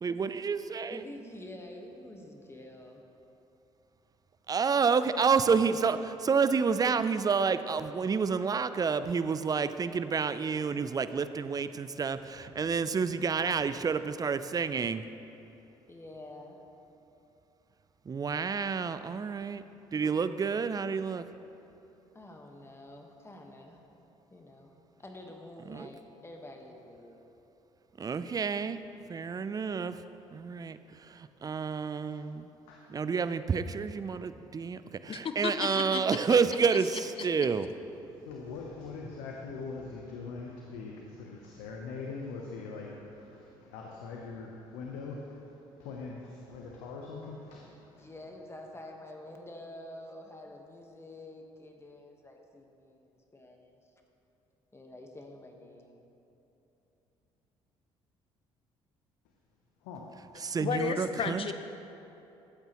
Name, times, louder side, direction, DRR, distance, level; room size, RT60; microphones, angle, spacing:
voice 1, 0.0-1.0 4.5-15.0 18.1-19.6 19.9-21.2 25.7-25.9 28.0-28.8 29.1-30.0 30.3-30.8 31.2-32.5 32.9-37.7 60.4-61.5, right 5 dB, 30° right, 12 dB, 0.4 m, -29 dB
voice 2, 0.9-3.0 15.9-16.7 22.1-23.9 24.3-24.7 25.0-27.2 47.8-53.7 54.7-56.0, left 1 dB, 20° left, 2 dB, 1.3 m, -48 dB
voice 3, 12.2-12.8 13.2-13.7 18.9-19.2 32.0-32.2 32.6-32.8 38.1-48.1 59.8-60.1, left 4 dB, 85° left, -1 dB, 0.8 m, -43 dB
voice 4, 35.1-36.2 36.7-37.5 60.6-61.5, left 6 dB, 45° left, 8 dB, 0.7 m, -34 dB
13.0 x 8.1 x 3.0 m, 3.0 s
hypercardioid pair, 60°, 13 cm